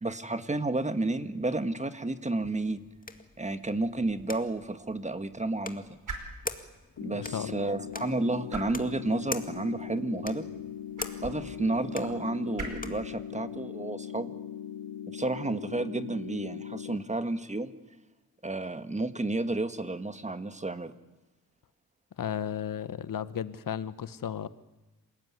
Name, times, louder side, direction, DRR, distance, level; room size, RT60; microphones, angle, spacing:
voice 1, 0.0-2.8 3.4-6.0 7.0-10.5 11.2-14.3 15.1-17.7 18.4-20.9, right 2 dB, 20° right, 10 dB, 1.7 m, -31 dB
sound 1, 2.4-13.1, left 3 dB, 25° left, 1.9 m, -44 dB
sound 2, 3.0-16.6, right 3 dB, 60° right, 5.2 m, -48 dB
sound 3, 7.0-17.0, left 9 dB, 85° left, 1.0 m, -40 dB
voice 2, 7.1-7.8 22.2-24.5, left 9 dB, 65° left, 15 dB, 1.1 m, -34 dB
27.5 x 18.5 x 9.6 m, 1.1 s
cardioid pair, 95°, 36 cm